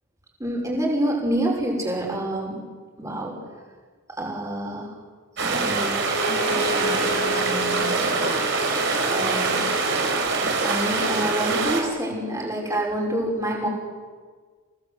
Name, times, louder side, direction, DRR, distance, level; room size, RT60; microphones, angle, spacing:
voice 1, 0.4-2.6 3.0-3.3 4.2-4.9 5.4-6.1 6.4-8.8 9.1-9.7 10.5-13.7, right 1 dB, 15° right, -2 dB, 6.0 m, -28 dB
sound 1, 5.4-11.8, right 4 dB, 55° right, 4.9 m, -24 dB
Bowed string instrument, 6.0-10.3, left 1 dB, 45° left, 1.8 m, -32 dB
29.5 x 19.0 x 8.1 m, 1.5 s
head